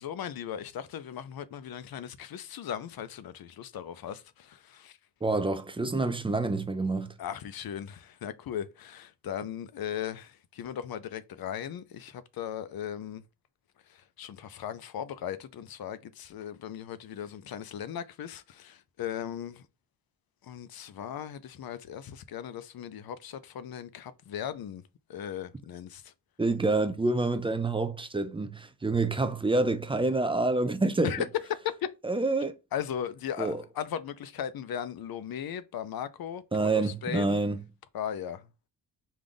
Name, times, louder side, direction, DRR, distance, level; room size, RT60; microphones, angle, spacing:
voice 1, 0.0-5.0 7.2-13.2 13.9-19.6 20.4-24.8 25.1-26.1 31.0-31.9 32.7-37.4 37.9-38.5, left 9 dB, 65° left, 0.5 m, -37 dB
voice 2, 5.2-7.1 26.4-31.1 32.0-32.5 33.4-33.6 36.5-37.6, right 3 dB, 15° right, 0.3 m, -27 dB
5.1 x 2.4 x 3.7 m
wide cardioid pair, 145°, 39 cm